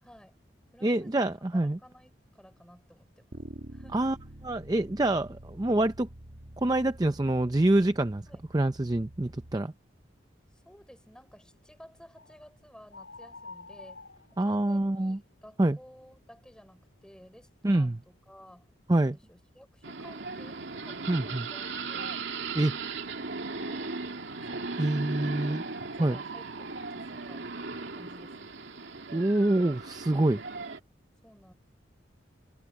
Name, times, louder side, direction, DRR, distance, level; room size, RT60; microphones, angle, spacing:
voice 1, 0.0-0.4 0.7-3.4 3.7-4.0 8.3-8.4 10.5-18.7 19.0-22.3 23.6-23.9 24.4-24.9 25.2-27.5 27.9-28.5 30.5-30.7 31.2-31.5, equal, 5° left, 5.4 m, -55 dB
voice 2, 0.8-1.8 3.9-4.2 4.4-6.1 6.6-8.3 8.5-9.7 14.4-15.2 15.6-15.8 17.6-18.0 18.9-19.2 21.1-21.5 22.5-22.8 24.8-25.6 26.0-26.2 29.1-30.4, right 1 dB, 20° right, 0.5 m, -26 dB
Bass guitar, 3.3-9.6, right 1 dB, 55° right, 1.4 m, -47 dB
sound 1, 12.2-12.4 12.9-15.0, left 3 dB, 80° left, 6.9 m, -48 dB
sound 2, 19.8-30.8, right 4 dB, 80° right, 2.4 m, -37 dB
head